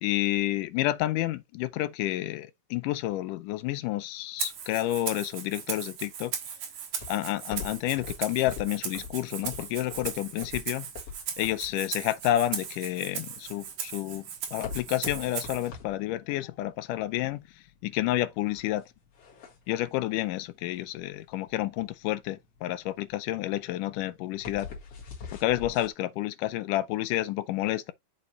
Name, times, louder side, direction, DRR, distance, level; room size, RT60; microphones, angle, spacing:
voice 1, 0.0-6.3 7.1-10.9 11.4-17.4 17.8-18.9 19.7-24.7 25.3-27.9, left 15 dB, 80° left, 2.0 m, -30 dB
Rattle (instrument), 4.4-15.7, right 7 dB, 65° right, 2.5 m, -38 dB
sound 1, 6.9-25.9, left 5 dB, 50° left, 2.5 m, -44 dB
6.8 x 5.7 x 3.1 m
omnidirectional pair, 4.0 m